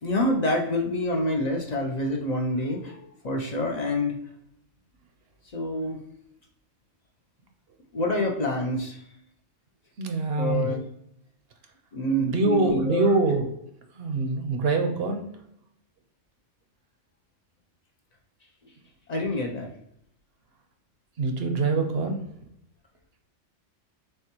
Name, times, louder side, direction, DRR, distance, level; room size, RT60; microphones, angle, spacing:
voice 1, 0.0-4.2 5.5-6.0 7.9-9.0 10.4-10.8 11.9-13.2 19.1-19.7, left 1 dB, 45° left, 1 dB, 0.5 m, -27 dB
voice 2, 10.0-10.7 12.2-13.5 13.9-15.2 21.2-22.2, right 3 dB, 60° right, 5 dB, 0.8 m, -24 dB
6.4 x 2.2 x 2.9 m, 0.76 s
omnidirectional pair, 1.3 m